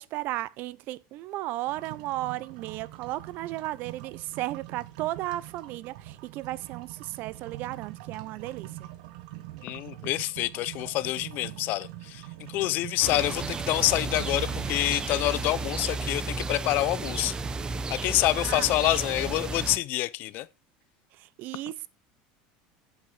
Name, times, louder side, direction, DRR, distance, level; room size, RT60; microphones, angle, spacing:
voice 1, 0.0-8.9 18.4-18.8 21.1-21.9, right 16 dB, 55° right, 0.6 m, -35 dB
sound 1, 1.7-17.6, right 15 dB, 80° right, 1.2 m, -44 dB
voice 2, 9.6-17.4 17.9-20.5, left 17 dB, 55° left, 0.6 m, -27 dB
sound 2, 13.0-19.8, right 3 dB, 20° right, 0.9 m, -33 dB
8.2 x 8.1 x 4.9 m
supercardioid pair, 130°, 4 cm